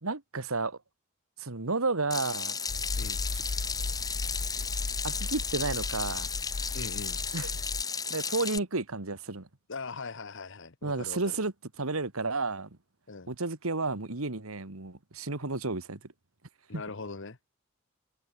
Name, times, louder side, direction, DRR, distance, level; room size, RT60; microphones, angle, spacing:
voice 1, 0.0-0.8 1.4-2.6 3.3-3.4 5.0-6.3 7.3-7.5 8.1-9.5 10.8-11.5 11.8-12.7 13.3-16.0 16.7-16.8, right 3 dB, 90° right, 2.1 m, -32 dB
Water tap faucet / Sink (filling or washing), 2.1-8.6, left 5 dB, 20° left, 1.2 m, -34 dB
sound 1, 2.7-7.8, left 3 dB, 45° left, 0.7 m, -36 dB
voice 2, 6.7-7.2 9.7-11.4 13.1-13.3 16.7-17.4, left 4 dB, 65° left, 1.3 m, -40 dB
head